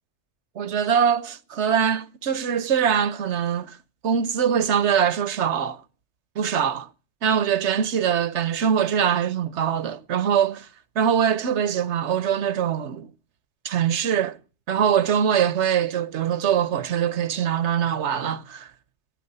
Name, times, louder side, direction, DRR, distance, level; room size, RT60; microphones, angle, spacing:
voice 1, 0.6-3.8 4.0-5.8 6.4-6.9 7.2-10.7 11.0-13.1 13.6-14.4 14.7-18.7, right 8 dB, 70° right, 1.0 m, -23 dB
13.5 x 9.5 x 5.4 m
omnidirectional pair, 1.3 m